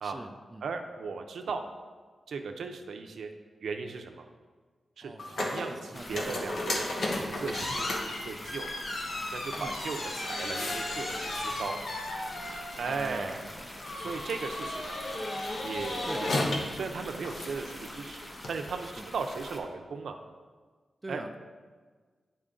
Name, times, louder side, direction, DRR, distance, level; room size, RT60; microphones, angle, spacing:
voice 1, 0.0-0.7 5.0-5.4 5.9-6.4 9.5-9.8 12.8-13.7 16.0-16.3 18.8-19.1 21.0-21.4, right 2 dB, 20° right, 6 dB, 0.5 m, -42 dB
voice 2, 0.6-1.6 2.3-3.3 3.6-4.3 5.0-7.9 8.2-8.7 9.3-11.8 12.8-13.3 14.0-15.0 15.6-16.3 16.7-18.9 19.1-20.1 21.1-21.2, right 5 dB, 85° right, 5 dB, 0.5 m, -37 dB
sound 1, 5.2-18.5, left 1 dB, 75° left, 1.1 m, -35 dB
sound 2, 5.9-19.6, left 1 dB, 25° left, 1.0 m, -45 dB
9.4 x 4.3 x 3.8 m, 1.5 s
cardioid pair, 85°, 0 cm